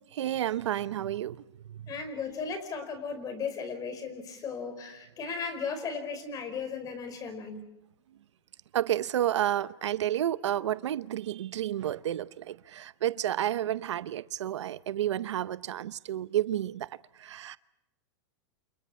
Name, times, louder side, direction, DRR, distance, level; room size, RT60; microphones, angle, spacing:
voice 1, 0.1-1.4 1.7-1.9 8.7-16.9 17.2-17.6, right 12 dB, 85° right, 0.8 m, -31 dB
voice 2, 1.9-7.7, left 5 dB, 25° left, 4.8 m, -36 dB
29.5 x 28.5 x 4.4 m
supercardioid pair, 140°, 15 cm